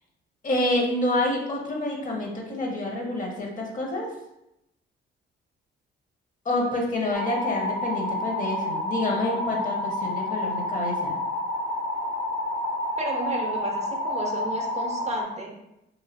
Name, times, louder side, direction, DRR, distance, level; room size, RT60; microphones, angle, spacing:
voice 1, 0.4-4.1 6.4-11.2, left 1 dB, 40° left, -1 dB, 0.8 m, -28 dB
sound 1, 7.1-15.2, left 1 dB, 65° left, 1.0 m, -29 dB
voice 2, 13.0-15.5, right 2 dB, 35° right, 2 dB, 0.5 m, -32 dB
3.1 x 2.4 x 2.7 m, 0.85 s
cardioid pair, 90°, 20 cm